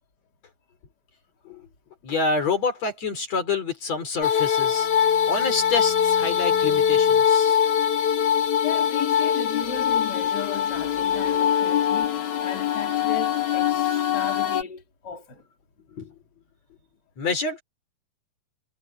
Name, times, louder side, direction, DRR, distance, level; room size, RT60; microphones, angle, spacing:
voice 1, 2.0-4.9 5.3-7.6 15.9-16.1 17.2-17.6, left 4 dB, 60° left, 5.0 m, -27 dB
sound 1, 4.2-14.6, left 8 dB, 80° left, 3.5 m, -22 dB
Bowed string instrument, 4.3-7.5, right 2 dB, 45° right, 5.8 m, -45 dB
voice 2, 8.6-15.4, left 6 dB, 35° left, 4.3 m, -36 dB
omnidirectional pair, 3.4 m